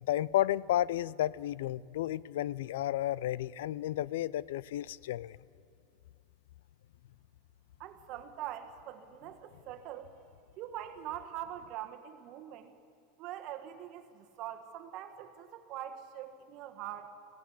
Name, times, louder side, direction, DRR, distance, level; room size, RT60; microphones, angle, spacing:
voice 1, 0.0-5.4, left 13 dB, 85° left, 22 dB, 0.4 m, -32 dB
voice 2, 7.8-10.1 10.6-12.7 13.2-17.1, right 11 dB, 40° right, 8 dB, 1.5 m, -43 dB
21.0 x 16.0 x 8.4 m, 2.4 s
supercardioid pair, 170°, 0 cm